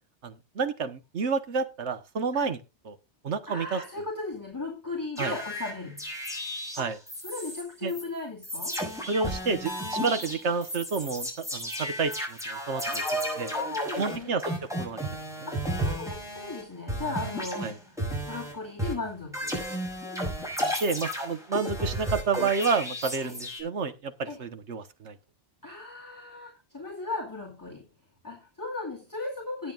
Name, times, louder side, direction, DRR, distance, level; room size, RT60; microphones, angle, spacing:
voice 1, 0.2-2.6 2.8-3.0 3.2-3.8 5.2-5.3 6.8-7.0 7.8-7.9 9.1-13.0 13.4-13.5 14.0-14.4 14.7-15.0 17.6-17.7 20.6-25.1, right 5 dB, 90° right, 10 dB, 1.5 m, -30 dB
voice 2, 3.5-6.0 6.8-6.9 7.2-8.8 10.0-10.1 12.9-14.4 15.5-18.0 18.2-19.6 23.2-23.3 24.2-24.4 25.6-27.8 28.2-29.7, left 3 dB, 15° left, -2 dB, 2.6 m, -37 dB
sound 1, 5.2-7.6 7.9-8.0 8.4-16.6 16.9-18.5 18.8-23.6, equal, 5° right, 6.2 m, -33 dB
19.5 x 7.7 x 2.5 m, 0.26 s
omnidirectional pair, 1.1 m